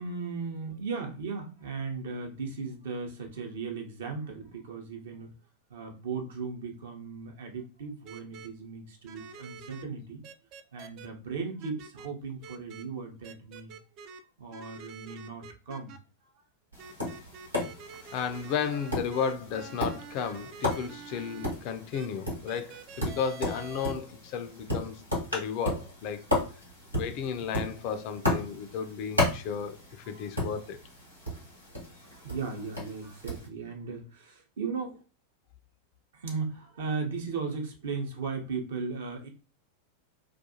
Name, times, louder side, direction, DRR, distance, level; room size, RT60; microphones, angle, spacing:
voice 1, 0.0-5.3 5.7-10.2 10.7-13.7 14.4-16.0 30.1-30.3 32.0-35.0 36.1-39.3, right 4 dB, 60° right, 0.7 m, -37 dB
sound 1, 8.1-8.5 9.1-9.8 10.2-11.1 11.6-12.1 12.4-12.8 13.2-14.2 14.5-16.0 16.8-21.5 21.9-22.1 22.5-23.9, right 5 dB, 40° right, 0.3 m, -47 dB
Tap, 16.7-33.5, left 1 dB, 90° right, 1.1 m, -35 dB
voice 2, 18.1-25.0 25.3-26.2 26.9-30.8, left 7 dB, 45° left, 0.4 m, -33 dB
2.4 x 2.3 x 2.6 m
figure-of-eight pair, 90°, 0 cm